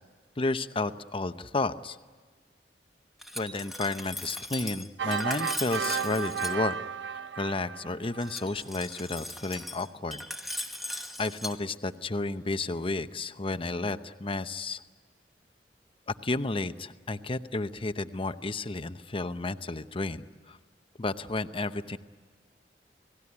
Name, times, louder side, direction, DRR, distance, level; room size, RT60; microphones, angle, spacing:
voice 1, 0.4-2.0 3.4-6.8 7.4-10.2 10.9-14.8 16.1-20.6 21.0-22.0, left 2 dB, 30° left, 11 dB, 0.8 m, -32 dB
Glass, 3.2-6.5 8.2-11.5, left 1 dB, ahead, 1.3 m, -38 dB
sound 1, 5.0-8.5, right 6 dB, 85° right, 0.7 m, -33 dB
29.5 x 18.5 x 9.8 m, 1.5 s
head